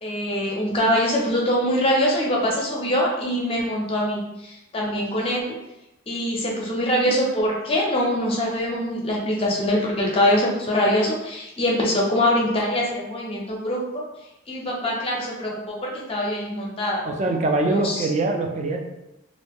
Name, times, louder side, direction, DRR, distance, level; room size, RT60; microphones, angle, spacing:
voice 1, 0.0-5.5 6.1-13.8 14.5-17.0 17.6-18.1, equal, 30° left, -3 dB, 0.6 m, -23 dB
voice 2, 17.1-18.8, right 2 dB, 35° right, 2 dB, 0.3 m, -23 dB
2.5 x 2.2 x 3.4 m, 0.93 s
head